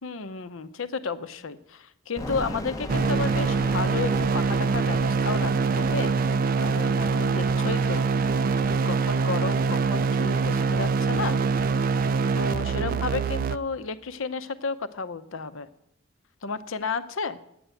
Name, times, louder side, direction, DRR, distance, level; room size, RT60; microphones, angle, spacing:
voice 1, 0.0-6.1 6.6-8.0 8.6-11.4 12.3-15.7 16.4-17.4, left 4 dB, 80° left, 12 dB, 0.7 m, -32 dB
sound 1, 2.2-13.0, left 1 dB, 15° left, 0.6 m, -40 dB
sound 2, 2.9-13.6, right 4 dB, 45° right, 0.4 m, -24 dB
10.0 x 7.8 x 8.2 m, 0.77 s
head